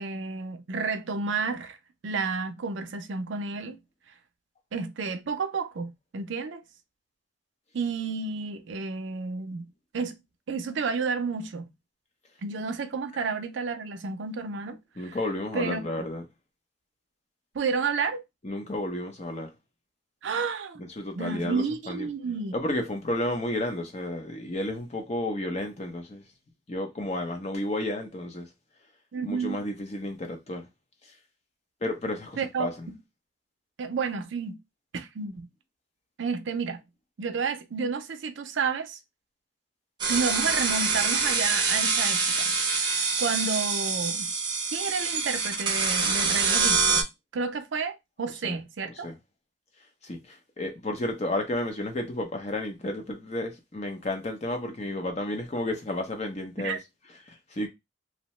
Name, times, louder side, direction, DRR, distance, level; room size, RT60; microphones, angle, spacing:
voice 1, 0.0-1.8 2.0-3.8 4.7-6.6 7.7-9.6 9.9-10.2 10.5-11.6 12.4-14.8 15.1-15.2 15.5-15.9 17.5-18.2 20.2-20.8 21.2-22.5 29.1-29.6 32.4-33.0 33.8-34.6 34.9-35.5 36.2-36.8 37.2-39.0 40.1-44.3 44.7-47.0 47.3-49.1 56.6-56.8, right 5 dB, 70° right, 0.4 m, -31 dB
voice 2, 15.0-16.2 18.4-19.5 20.8-22.1 22.5-26.2 26.7-28.5 29.2-30.7 31.8-32.9 48.4-48.6 49.0-49.2 50.0-56.8 57.3-57.7, left 1 dB, 35° left, 0.6 m, -32 dB
sound 1, 40.0-47.0, right 4 dB, 20° right, 0.7 m, -25 dB
2.7 x 2.1 x 3.0 m
head